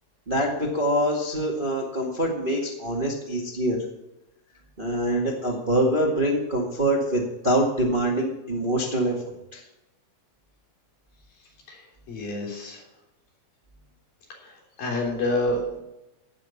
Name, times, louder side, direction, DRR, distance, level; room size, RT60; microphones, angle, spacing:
voice 1, 0.3-3.8 4.8-9.6, right 1 dB, 25° right, -1 dB, 1.2 m, -25 dB
voice 2, 11.7-12.8 14.3-15.8, left 1 dB, 80° left, -2 dB, 5.2 m, -29 dB
16.0 x 6.2 x 7.1 m, 0.92 s
omnidirectional pair, 4.0 m